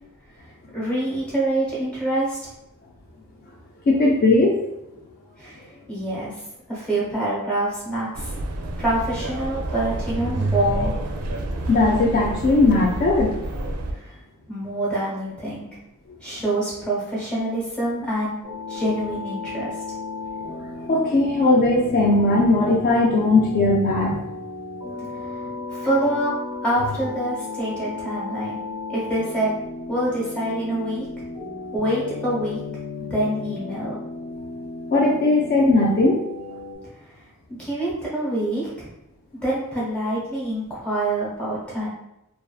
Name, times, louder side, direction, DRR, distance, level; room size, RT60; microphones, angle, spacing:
voice 1, 0.7-2.4 5.4-5.6 5.9-6.4 6.7-8.3 8.8-10.9 13.9-14.1 14.5-15.7 16.2-18.4 18.7-19.7 25.3-25.4 25.7-26.3 26.6-28.6 28.9-29.6 29.9-31.2 31.7-32.6 33.0-34.0 37.6-38.9 39.4-41.9, right 1 dB, 5° left, -8 dB, 1.0 m, -26 dB
voice 2, 3.9-4.6 11.7-13.3 20.9-24.2 34.9-36.2, left 2 dB, 45° left, -2 dB, 0.3 m, -18 dB
sound 1, 8.1-13.9, right 2 dB, 80° right, 0.4 m, -28 dB
sound 2, 18.4-36.7, left 3 dB, 80° left, 0.8 m, -34 dB
2.4 x 2.3 x 2.3 m, 0.90 s
head